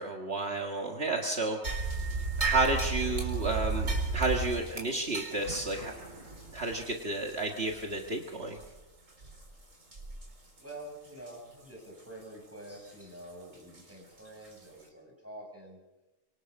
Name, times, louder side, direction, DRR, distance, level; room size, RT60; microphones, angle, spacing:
voice 1, 0.0-1.9 2.4-5.9 6.5-8.6, right 2 dB, 55° right, 1 dB, 2.1 m, -31 dB
sound 1, 1.6-8.2 8.6-8.7 9.2-9.4 9.9-10.3 10.6-10.7 11.3-11.4 13.7-13.8 14.4-14.5, right 4 dB, 80° right, 4.5 m, -34 dB
voice 2, 10.6-15.8, right 1 dB, 10° right, 0 dB, 7.2 m, -47 dB
26.0 x 25.0 x 5.4 m, 1.0 s
omnidirectional pair, 1.3 m